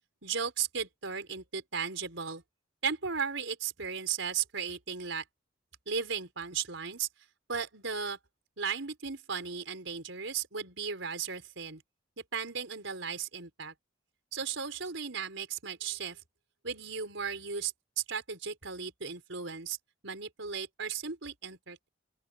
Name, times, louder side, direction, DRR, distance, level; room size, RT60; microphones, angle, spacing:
voice 1, 0.2-2.4 2.8-5.2 5.9-7.1 7.5-8.2 8.6-11.8 12.3-13.7 14.3-16.2 16.6-17.7 18.1-19.8 20.0-21.9, right 6 dB, 85° right, 4.3 m, -36 dB
open air
head